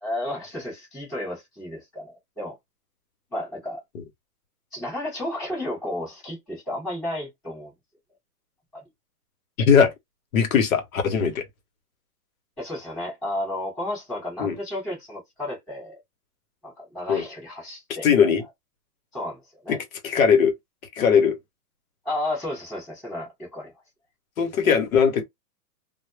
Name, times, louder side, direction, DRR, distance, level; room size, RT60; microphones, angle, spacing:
voice 1, 0.0-2.5 3.3-3.8 4.7-7.7 8.7-8.8 12.6-16.0 16.6-18.3 19.1-19.8 22.0-23.7, left 1 dB, 5° left, 0.5 m, -32 dB
voice 2, 9.6-9.9 10.3-11.5 14.4-14.6 17.1-17.3 18.0-18.4 19.7-20.5 21.0-21.4 24.4-25.2, left 6 dB, 60° left, 0.7 m, -20 dB
2.0 x 2.0 x 3.0 m
hypercardioid pair, 175°, 48 cm